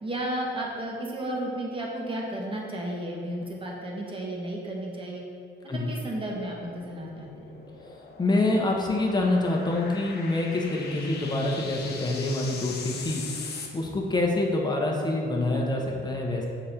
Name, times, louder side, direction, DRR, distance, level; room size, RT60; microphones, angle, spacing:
voice 1, 0.0-5.2 5.6-7.6, right 1 dB, 25° right, -2 dB, 1.5 m, -33 dB
sound 1, 6.4-13.7, left 4 dB, 55° left, 1.0 m, -41 dB
voice 2, 8.2-13.2 13.7-16.5, left 2 dB, 20° left, -1 dB, 1.2 m, -26 dB
6.6 x 5.0 x 4.4 m, 2.4 s
cardioid pair, 90°, 20 cm